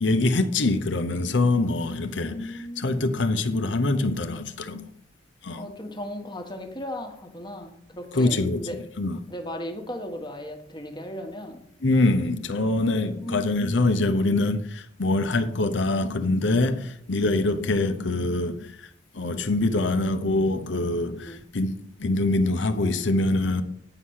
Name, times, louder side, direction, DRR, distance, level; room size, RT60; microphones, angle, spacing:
voice 1, 0.0-4.9 5.4-5.7 8.1-8.7 9.0-9.2 11.8-18.7 19.1-23.6, left 2 dB, 70° left, 0.8 m, -24 dB
voice 2, 2.2-3.2 5.6-8.8 9.3-11.6 13.2-14.4 21.3-21.4, left 1 dB, 25° left, 1.2 m, -36 dB
8.9 x 5.6 x 6.4 m
head